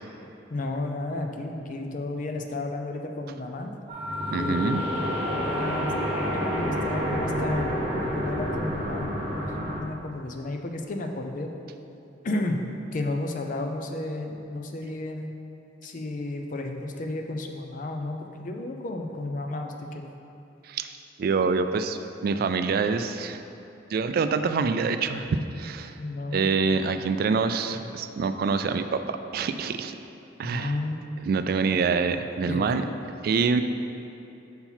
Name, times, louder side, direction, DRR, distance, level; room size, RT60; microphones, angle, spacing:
voice 1, 0.5-3.7 4.3-5.0 5.2-7.7 8.0-11.5 12.2-12.6 12.9-15.3 15.8-20.0 26.0-26.5 30.4-31.0 32.5-32.9, left 2 dB, 45° left, 4 dB, 0.5 m, -33 dB
sound 1, 3.9-9.8, equal, 30° right, 1.2 m, -28 dB
voice 2, 4.3-4.8 20.7-20.9 21.2-23.4 23.9-26.0 26.3-30.0 30.4-30.7 31.2-32.8 33.2-33.6, right 4 dB, 55° right, 9 dB, 0.3 m, -26 dB
5.5 x 4.4 x 5.6 m, 2.8 s
head